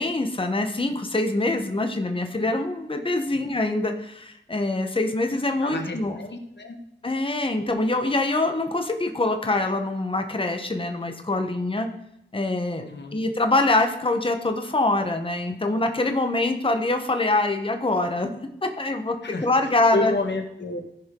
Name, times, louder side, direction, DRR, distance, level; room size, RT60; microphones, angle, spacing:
voice 1, 0.0-6.2 7.0-11.9 12.3-12.9 13.1-18.3 18.6-20.1, left 2 dB, 25° left, 5 dB, 1.2 m, -24 dB
voice 2, 5.6-6.8 12.8-13.2 19.2-20.8, left 2 dB, 65° left, 4 dB, 1.5 m, -30 dB
14.5 x 5.2 x 3.8 m, 0.83 s
wide cardioid pair, 65°, 20 cm